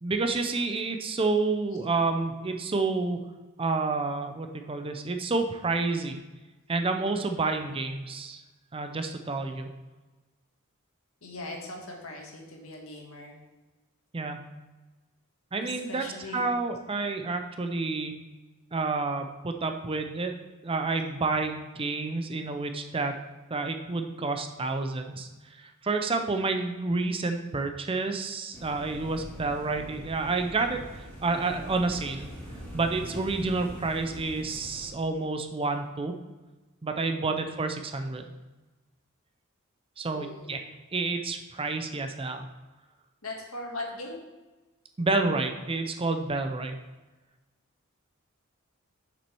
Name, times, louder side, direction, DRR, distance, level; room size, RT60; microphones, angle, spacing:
voice 1, 0.0-3.2 3.6-6.2 6.7-8.4 8.7-9.7 14.1-14.4 15.5-16.0 16.3-18.2 18.7-20.3 20.6-23.1 23.5-25.3 25.6-32.3 32.7-36.1 36.8-38.3 40.0-42.5 45.0-46.8, right 3 dB, 25° right, 6 dB, 0.5 m, -29 dB
voice 2, 11.2-13.3 15.6-16.5 37.2-37.5 40.1-40.6 43.2-44.2, left 2 dB, 75° left, 0 dB, 1.7 m, -40 dB
sound 1, 28.5-34.9, equal, 10° left, 2.2 m, -43 dB
7.1 x 6.1 x 4.6 m, 1.2 s
head